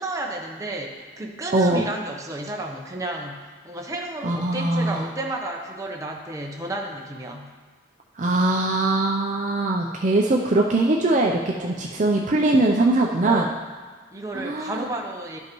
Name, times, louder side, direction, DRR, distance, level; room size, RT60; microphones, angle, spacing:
voice 1, 0.0-7.5 11.5-11.9 13.2-13.6 14.1-15.4, right 1 dB, 20° right, 0 dB, 0.8 m, -32 dB
voice 2, 1.5-1.9 4.2-5.1 8.2-13.5 14.3-14.8, right 2 dB, 40° right, 0 dB, 0.5 m, -21 dB
12.0 x 5.5 x 3.0 m, 1.5 s
head